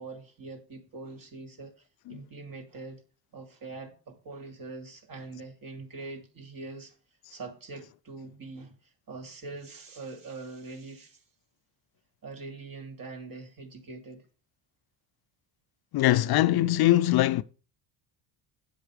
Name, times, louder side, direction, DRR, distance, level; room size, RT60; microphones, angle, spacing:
voice 1, 0.0-3.0 3.3-7.0 7.3-11.2 12.2-14.2, right 3 dB, 45° right, 2.9 m, -43 dB
voice 2, 15.9-17.4, left 15 dB, 50° left, 0.6 m, -22 dB
8.3 x 7.7 x 5.0 m
hypercardioid pair, 70°, 48 cm